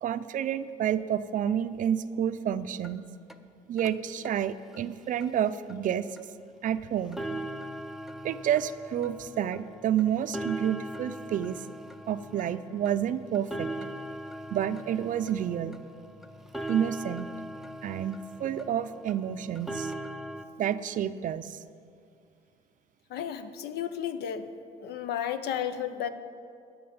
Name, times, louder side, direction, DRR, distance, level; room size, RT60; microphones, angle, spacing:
voice 1, 0.0-3.1 3.7-6.1 6.6-7.2 8.2-11.6 12.1-13.7 14.5-15.7 16.7-17.3 17.8-19.9 20.6-21.6, right 9 dB, 50° right, 13 dB, 0.5 m, -29 dB
sound 1, 2.8-2.9 3.3-3.4 3.8-3.9 4.2-4.3 4.7-4.8 5.2-5.3 5.7-5.8 6.2-6.3 6.7-6.8 7.1-20.4, right 1 dB, ahead, 0.6 m, -40 dB
voice 2, 23.1-24.5 24.8-26.1, left 9 dB, 75° left, 11 dB, 0.8 m, -33 dB
12.5 x 5.8 x 8.7 m, 2.4 s
cardioid pair, 110°, 17 cm